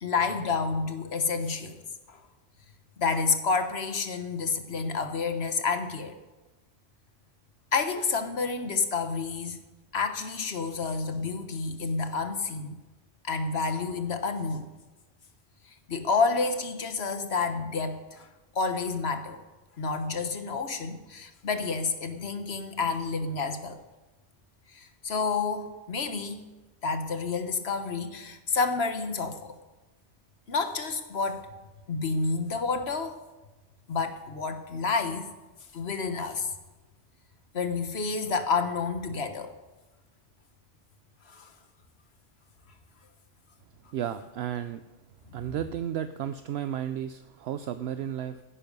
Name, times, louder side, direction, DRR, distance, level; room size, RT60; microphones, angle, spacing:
voice 1, 0.0-1.8 2.1-2.2 3.0-6.2 7.7-9.6 9.9-12.7 13.2-14.7 15.9-18.3 18.5-19.4 19.8-23.8 24.7-26.4 26.8-29.4 30.5-31.5 31.9-33.2 33.9-35.3 35.7-36.5 37.5-39.5 41.3-41.5, left 4 dB, 60° left, 8 dB, 1.4 m, -29 dB
voice 2, 43.9-44.8 45.3-48.4, right 10 dB, 65° right, 11 dB, 0.8 m, -33 dB
15.0 x 10.0 x 5.4 m, 1.1 s
omnidirectional pair, 1.2 m